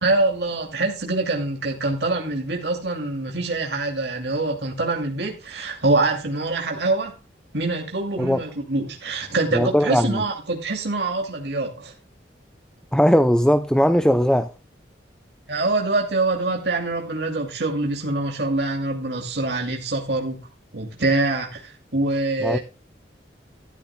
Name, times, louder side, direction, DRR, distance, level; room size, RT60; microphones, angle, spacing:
voice 1, 0.0-7.2 7.5-11.9 15.5-20.5 20.7-22.6, right 2 dB, 70° right, 2.6 m, -25 dB
voice 2, 9.5-10.2 12.9-14.5 22.4-22.6, equal, 5° left, 0.5 m, -18 dB
13.0 x 13.0 x 2.2 m
head